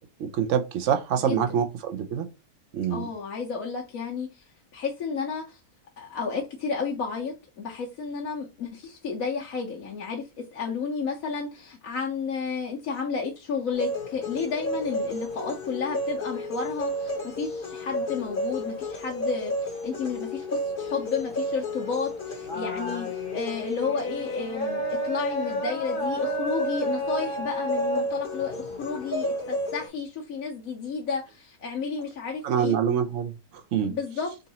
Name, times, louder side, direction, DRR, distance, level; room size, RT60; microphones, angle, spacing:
voice 1, 0.2-2.3 2.7-3.1 32.4-33.3 33.7-33.9, right 8 dB, 60° right, 1.0 m, -25 dB
voice 2, 1.2-1.6 2.9-4.4 4.7-5.6 6.0-32.7 33.8-34.3, left 5 dB, 70° left, 1.3 m, -32 dB
sound 1, 13.7-29.9, equal, 40° left, 1.0 m, -31 dB
3.9 x 2.7 x 4.0 m
omnidirectional pair, 1.6 m